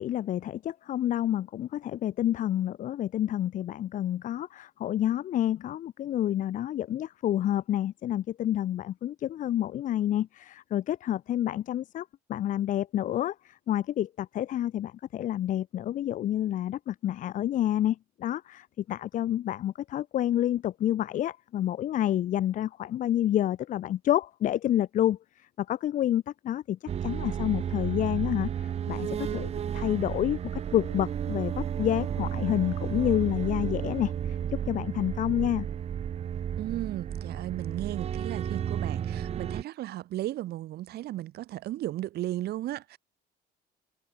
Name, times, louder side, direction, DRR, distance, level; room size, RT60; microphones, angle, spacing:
voice 1, 0.0-30.4 30.7-35.7, left 12 dB, 50° left, 0.5 m, -29 dB
sound 1, 26.9-39.6, right 9 dB, 40° right, 0.6 m, -32 dB
voice 2, 36.6-43.0, right 14 dB, 70° right, 2.1 m, -35 dB
cardioid pair, 110°, 17 cm